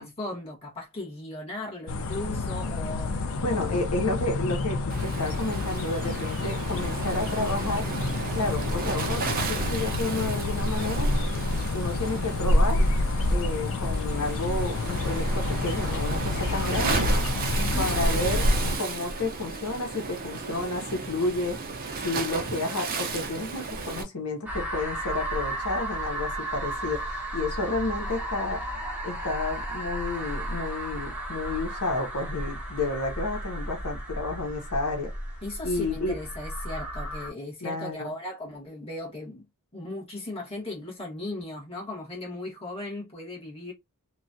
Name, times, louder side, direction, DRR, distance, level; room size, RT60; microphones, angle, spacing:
voice 1, 0.0-3.8 17.5-17.9 35.4-39.4 39.7-43.7, left 2 dB, 25° left, 1.4 m, -37 dB
sound 1, 1.9-18.8, left 2 dB, 65° left, 0.5 m, -28 dB
voice 2, 3.4-7.9 8.3-11.1 11.7-12.9 13.3-17.0 17.8-18.5 18.7-21.6 22.0-28.6 29.0-35.1 35.6-36.1 37.6-38.1, left 2 dB, 85° left, 0.9 m, -31 dB
Waves surf, 4.9-24.0, right 4 dB, 40° right, 0.6 m, -33 dB
sound 2, 24.5-37.3, right 1 dB, 5° right, 0.8 m, -34 dB
3.1 x 2.3 x 2.6 m
head